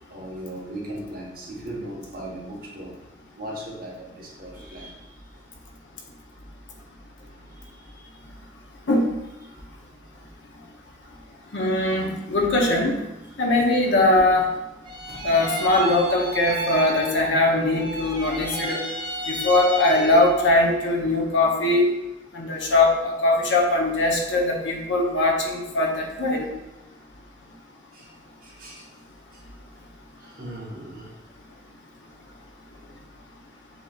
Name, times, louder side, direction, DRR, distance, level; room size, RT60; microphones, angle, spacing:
voice 1, 0.1-3.0 3.3-5.0 6.9-8.2 9.5-9.6 10.0-10.6 14.1-14.2 15.1-15.3 27.9-28.1 28.4-28.9 29.3-29.4 30.2-31.1, right 1 dB, 50° right, -4 dB, 1.2 m, -38 dB
voice 2, 11.5-13.0 13.4-14.4 15.2-18.8 19.3-21.9 22.3-26.5, left 2 dB, 80° left, 0 dB, 0.9 m, -21 dB
sound 1, 14.8-17.5 17.7-20.5, equal, 25° right, 0.5 m, -32 dB
7.2 x 2.9 x 2.4 m, 0.97 s
head